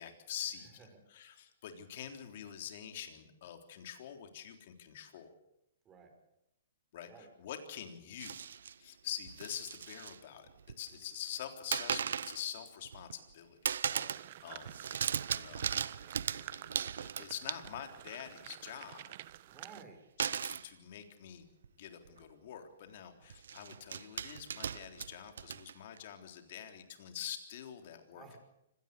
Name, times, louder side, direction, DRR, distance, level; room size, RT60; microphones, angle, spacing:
voice 1, 0.0-5.3 6.9-8.4 8.8-10.5 10.8-13.6 14.4-14.8 15.3-19.2 20.2-21.5 21.8-28.4, left 9 dB, 55° left, 6 dB, 3.6 m, -46 dB
sound 1, 8.2-8.7 9.3-10.2 10.5-11.0 11.7-12.4 12.8-13.3 13.6-14.3 14.6-17.9 20.2-20.7 21.6-21.7 22.0-22.2 23.3-26.0, right 7 dB, 80° right, 0.8 m, -37 dB
voice 2, 13.8-14.2 19.5-20.0 28.1-28.4, right 5 dB, 20° right, 4 dB, 5.7 m, -54 dB
sound 2, 14.1-19.8, right 14 dB, 50° right, 1.0 m, -50 dB
25.0 x 17.5 x 6.9 m, 0.84 s
hypercardioid pair, 140°, 0 cm